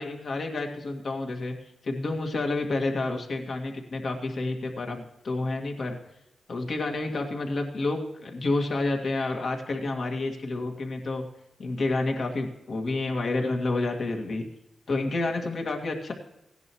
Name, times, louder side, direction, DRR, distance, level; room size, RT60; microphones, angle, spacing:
voice 1, 0.0-1.5 1.8-6.0 6.5-11.2 11.6-14.5 14.9-16.1, left 2 dB, 60° left, 3 dB, 1.9 m, -29 dB
17.0 x 10.5 x 3.0 m, 0.88 s
cardioid pair, 80°, 0 cm